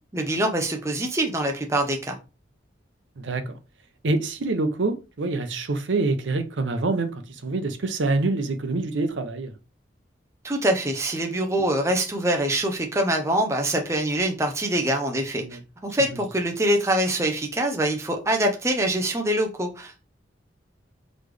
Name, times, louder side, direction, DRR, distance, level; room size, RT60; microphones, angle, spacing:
voice 1, 0.1-2.2 10.4-20.1, right 1 dB, 15° right, 0.5 m, -24 dB
voice 2, 3.2-3.5 4.0-9.5 15.4-15.6, right 3 dB, 80° right, 0.6 m, -26 dB
4.0 x 3.1 x 3.2 m
head